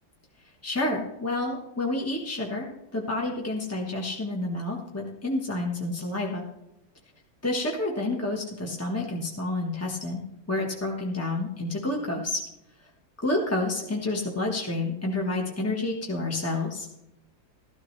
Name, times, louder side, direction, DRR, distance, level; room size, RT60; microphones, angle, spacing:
voice 1, 0.6-6.4 7.4-12.4 13.2-16.9, left 2 dB, 15° left, -1 dB, 0.6 m, -29 dB
13.5 x 12.5 x 3.2 m, 0.87 s
omnidirectional pair, 2.1 m